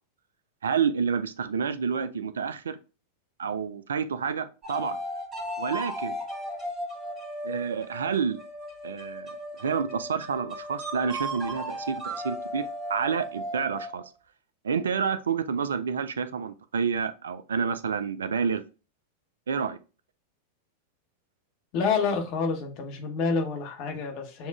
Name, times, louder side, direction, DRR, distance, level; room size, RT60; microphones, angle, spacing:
voice 1, 0.6-2.8 3.4-5.0 5.6-6.2 7.4-8.4 8.8-9.3 9.6-14.0 14.6-18.6 19.5-19.8, right 6 dB, 65° right, 0.3 m, -29 dB
sound 1, 4.6-14.1, equal, 20° right, 1.3 m, -36 dB
voice 2, 21.7-24.5, left 5 dB, 45° left, 0.9 m, -28 dB
6.9 x 2.4 x 2.3 m
figure-of-eight pair, 90°, 0 cm